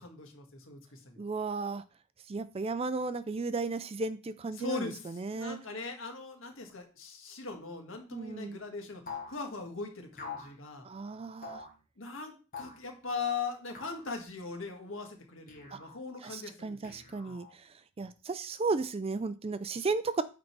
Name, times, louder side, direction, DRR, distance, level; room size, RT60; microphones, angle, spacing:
voice 1, 0.0-1.2 4.5-9.0 9.3-10.8 12.0-17.4, left 4 dB, 60° left, 3 dB, 1.7 m, -40 dB
voice 2, 1.2-1.8 2.3-5.6 8.1-8.6 10.8-11.7 15.7-15.8 16.2-17.7 18.0-20.2, right 4 dB, 25° right, 13 dB, 0.4 m, -34 dB
sound 1, 9.1-9.4 10.2-10.5 11.4-11.7 12.5-12.9 13.7-14.1 15.5-16.0 16.8-17.5, left 5 dB, 40° left, 1.5 m, -44 dB
8.7 x 3.9 x 4.6 m, 0.34 s
head